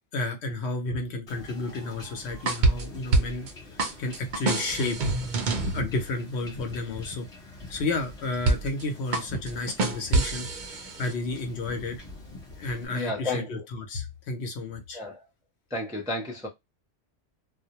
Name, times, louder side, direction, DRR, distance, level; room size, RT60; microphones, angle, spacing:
voice 1, 0.1-5.0 5.7-7.3 7.7-10.5 11.0-12.0 12.6-15.0, left 2 dB, 65° left, 0.9 m, -31 dB
Wind / Ocean / Boat Water vehicle, 1.3-12.9, left 2 dB, 35° left, 0.9 m, -42 dB
sound 1, 2.3-3.5 3.8-5.8 8.5-8.8 9.1-11.1, right 3 dB, 60° right, 0.5 m, -26 dB
voice 2, 12.9-13.6 14.9-15.2 15.7-16.5, left 2 dB, 5° right, 0.4 m, -32 dB
2.2 x 2.0 x 2.8 m
omnidirectional pair, 1.2 m